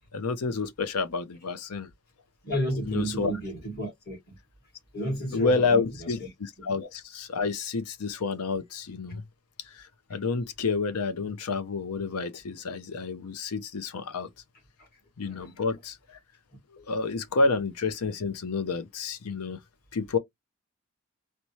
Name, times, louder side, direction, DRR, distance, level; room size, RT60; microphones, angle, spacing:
voice 1, 0.0-1.9 2.9-3.3 5.3-9.2 9.7-14.3 15.2-16.0 16.9-19.6 19.9-20.2, left 4 dB, 85° left, 0.6 m, -29 dB
voice 2, 2.4-4.4 4.9-5.8 15.3-15.5, equal, 45° left, 2.2 m, -31 dB
4.1 x 2.2 x 3.0 m
head